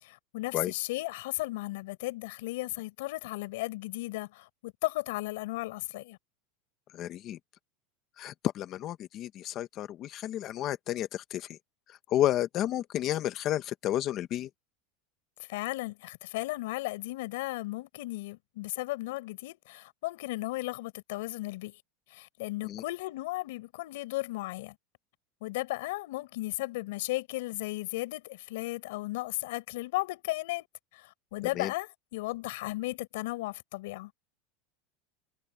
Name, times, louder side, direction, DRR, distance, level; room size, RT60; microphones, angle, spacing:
voice 1, 0.0-6.2 15.5-21.8 22.1-24.8 25.4-30.7 30.9-34.1, left 20 dB, 65° left, 5.2 m, -35 dB
voice 2, 6.9-7.4 8.2-11.6 11.9-14.5 22.6-22.8 31.5-31.7, left 12 dB, 30° left, 1.1 m, -31 dB
supercardioid pair, 175°, 0 cm